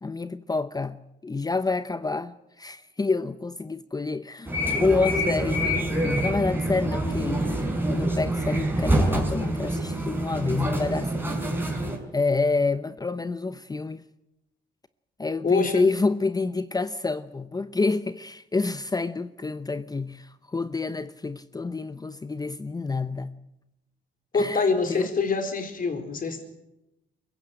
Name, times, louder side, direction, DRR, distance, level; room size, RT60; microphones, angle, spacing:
voice 1, 0.0-4.5 4.8-7.4 7.9-11.3 11.6-11.8 12.1-14.0 15.2-23.3 24.3-25.1, left 3 dB, 20° left, 0.8 m, -28 dB
sound 1, 4.5-12.0, right 1 dB, 10° right, 5.4 m, -26 dB
voice 2, 15.4-15.8 24.3-26.4, left 4 dB, 45° left, 4.4 m, -25 dB
23.5 x 16.0 x 9.1 m
cardioid pair, 90°, 20 cm